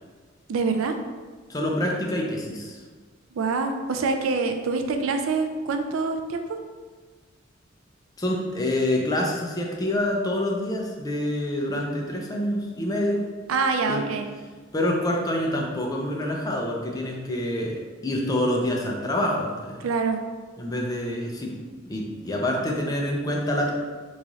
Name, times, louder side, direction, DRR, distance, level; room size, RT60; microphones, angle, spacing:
voice 1, 0.5-0.9 3.3-6.6 13.5-14.3 19.8-20.2, right 4 dB, 80° right, 6 dB, 0.4 m, -25 dB
voice 2, 1.5-2.8 8.2-13.2 13.9-14.1 14.7-19.8 20.6-21.5 21.9-23.7, left 1 dB, 20° left, 0 dB, 0.4 m, -26 dB
3.1 x 2.4 x 3.9 m, 1.4 s
head